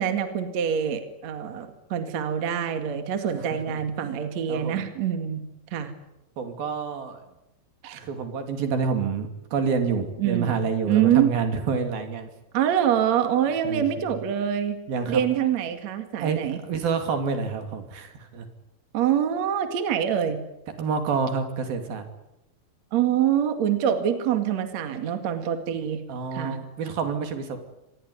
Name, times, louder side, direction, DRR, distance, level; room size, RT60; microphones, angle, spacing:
voice 1, 0.0-5.4 5.7-5.9 7.8-8.0 10.2-10.6 10.9-11.3 12.5-14.8 15.1-16.6 18.9-20.4 22.9-26.0 26.3-26.6, right 9 dB, 50° right, 8 dB, 3.0 m, -25 dB
voice 2, 3.7-4.1 4.5-4.8 6.4-7.2 7.9-12.3 13.6-14.1 14.9-15.2 16.2-18.5 20.8-22.1 26.1-27.6, right 5 dB, 75° right, 7 dB, 4.6 m, -28 dB
26.0 x 20.5 x 9.6 m, 0.89 s
omnidirectional pair, 4.3 m